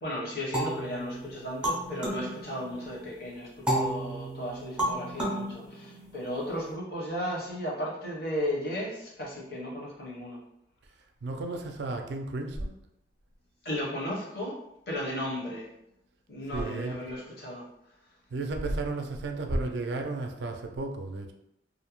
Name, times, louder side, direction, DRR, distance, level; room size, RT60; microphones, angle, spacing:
voice 1, 0.0-10.4 13.6-14.6 14.9-15.7 16.3-17.6, equal, 55° left, -4 dB, 0.8 m, -35 dB
sound 1, 0.5-3.0 3.7-6.5, right 1 dB, 5° right, 0.4 m, -33 dB
voice 2, 11.2-12.7 16.5-17.0 18.3-21.3, right 2 dB, 75° right, 4 dB, 0.4 m, -33 dB
2.5 x 2.1 x 2.9 m, 0.83 s
head